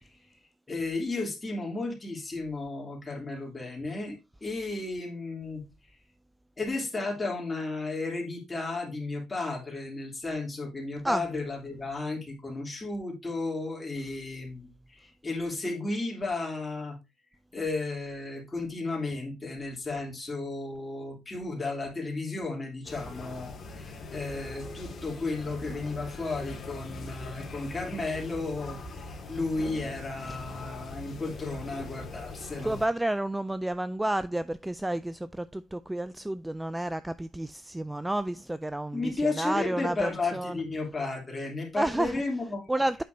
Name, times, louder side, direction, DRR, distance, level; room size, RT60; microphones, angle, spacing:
voice 1, 0.7-5.6 6.6-17.0 17.5-32.8 38.9-42.7, left 3 dB, 20° left, 2.9 m, -34 dB
sound 1, 22.8-32.9, left 2 dB, 45° left, 2.1 m, -41 dB
voice 2, 32.6-40.6 41.8-42.2 42.7-43.0, right 1 dB, 10° right, 0.3 m, -30 dB
8.3 x 5.9 x 2.6 m
cardioid pair, 95°, 0 cm